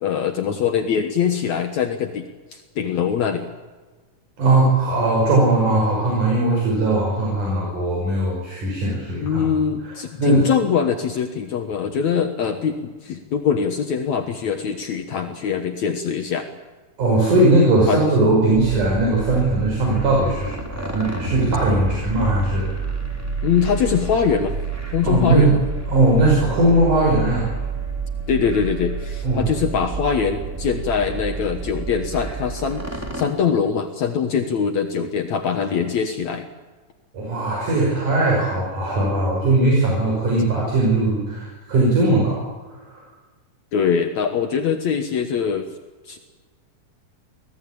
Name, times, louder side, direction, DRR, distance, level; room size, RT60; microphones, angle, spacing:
voice 1, 0.0-3.5 9.2-16.5 17.9-18.0 23.4-24.5 24.9-25.6 28.3-36.5 43.7-45.7 46.1-46.2, left 7 dB, 65° left, 5 dB, 2.5 m, -23 dB
voice 2, 4.4-9.4 9.8-10.4 17.0-22.9 25.0-25.5 25.9-27.5 29.2-29.5 37.1-43.0, right 2 dB, 70° right, -2 dB, 7.1 m, -19 dB
sound 1, 18.5-33.3, right 5 dB, 5° right, 3.2 m, -29 dB
25.5 x 18.0 x 8.7 m, 1.3 s
omnidirectional pair, 3.7 m